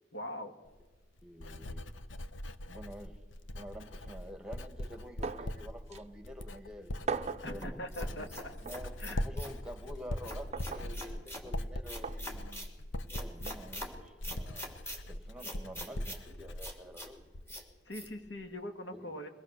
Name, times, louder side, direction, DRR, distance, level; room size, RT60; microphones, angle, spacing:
voice 1, 0.1-0.6 7.4-8.5 9.0-9.3 17.9-19.3, left 1 dB, 65° left, 5 dB, 2.2 m, -42 dB
Writing, 0.7-17.7 18.0-18.5, left 1 dB, 90° left, 0.9 m, -41 dB
voice 2, 1.2-1.9 2.7-3.2 3.5-7.1 7.4-8.3 8.6-8.9 9.2-12.7 13.1-14.8 15.1-17.4 18.9-19.2, equal, 5° right, 6 dB, 1.7 m, -48 dB
sound 1, 5.2-5.6 5.9-6.0 7.1-7.5 8.6-8.8 10.5-10.9 12.0-12.2 13.5-13.6, right 5 dB, 35° right, 0.6 m, -37 dB
sound 2, 7.6-9.6 10.2-11.4 11.9-12.7 13.1-13.9 14.2-15.0 15.4-16.2 16.6-17.1 17.5-17.6 17.9-18.1, equal, 15° left, 2.8 m, -44 dB
22.5 x 18.5 x 6.6 m, 1.2 s
head